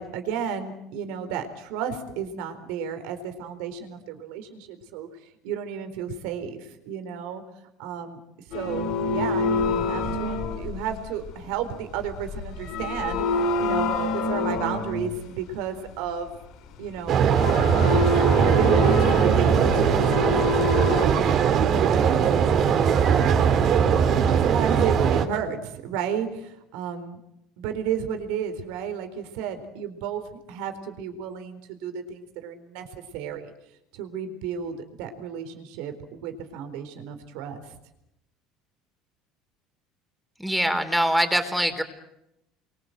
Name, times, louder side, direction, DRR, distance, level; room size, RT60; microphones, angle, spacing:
voice 1, 0.0-5.1 5.4-7.4 7.8-8.2 8.5-13.2 13.6-16.3 16.8-20.6 21.1-22.2 24.1-27.2 27.6-30.2 30.5-32.9 33.1-33.5 33.9-37.7, right 8 dB, 80° right, 8 dB, 4.2 m, -33 dB
sound 1, 8.5-11.4 12.1-15.2 17.3-21.3, left 3 dB, 65° left, 5.9 m, -27 dB
sound 2, 17.1-25.3, right 7 dB, 50° right, 3.3 m, -20 dB
voice 2, 40.4-41.8, equal, ahead, 7 dB, 3.7 m, -23 dB
29.5 x 23.5 x 8.0 m, 0.86 s
supercardioid pair, 115°, 0 cm